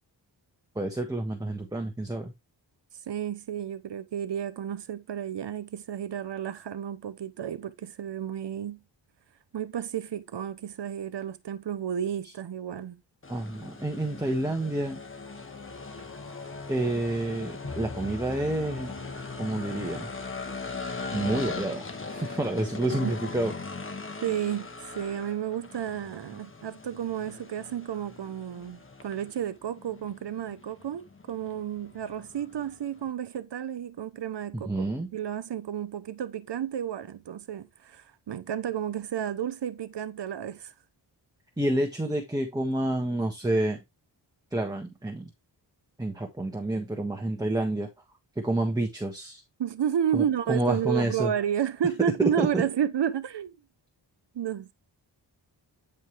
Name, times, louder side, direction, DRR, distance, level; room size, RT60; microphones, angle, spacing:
voice 1, 0.7-2.3 13.3-15.0 16.7-18.9 19.4-20.1 21.1-21.8 22.1-23.5 34.5-35.1 41.6-43.8 44.5-45.3 46.0-47.9 48.4-49.4 50.1-51.3 52.4-52.6, right 1 dB, 10° right, 1.5 m, -29 dB
voice 2, 3.1-8.8 9.5-13.0 23.0-23.1 24.2-34.9 35.1-40.7 49.6-53.5 54.3-54.7, right 9 dB, 70° right, 1.0 m, -31 dB
sound 1, 13.2-33.1, left 4 dB, 30° left, 1.3 m, -40 dB
sound 2, 15.2-20.8, left 3 dB, 60° left, 4.1 m, -44 dB
9.5 x 5.3 x 3.4 m
wide cardioid pair, 125°, 43 cm